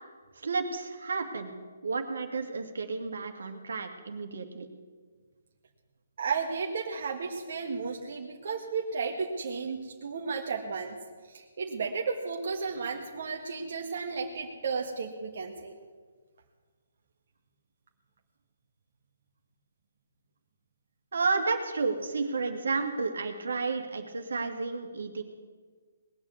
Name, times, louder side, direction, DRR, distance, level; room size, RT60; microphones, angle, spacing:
voice 1, 0.4-1.5 1.8-4.7 21.1-25.2, right 4 dB, 80° right, 5 dB, 2.2 m, -31 dB
voice 2, 6.2-11.0 11.2-15.7, right 5 dB, 55° right, 0 dB, 1.7 m, -33 dB
19.5 x 7.0 x 9.5 m, 1.5 s
hypercardioid pair, 150°, 0 cm